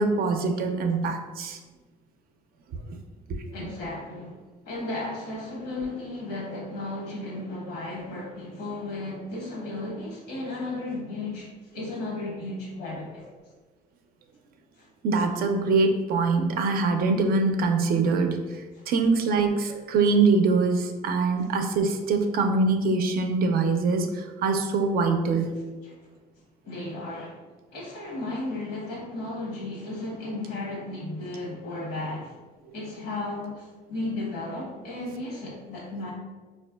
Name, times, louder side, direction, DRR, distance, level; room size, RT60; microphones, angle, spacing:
voice 1, 0.0-1.6 2.9-3.0 15.0-25.6, right 3 dB, 60° right, 5 dB, 0.5 m, -24 dB
voice 2, 3.5-4.4 4.6-13.3 14.8-14.9 25.8-25.9 26.6-27.4 27.7-32.4 32.7-36.1, left 2 dB, 85° left, -4 dB, 1.2 m, -34 dB
4.1 x 2.4 x 2.3 m, 1.3 s
cardioid pair, 110°, 17 cm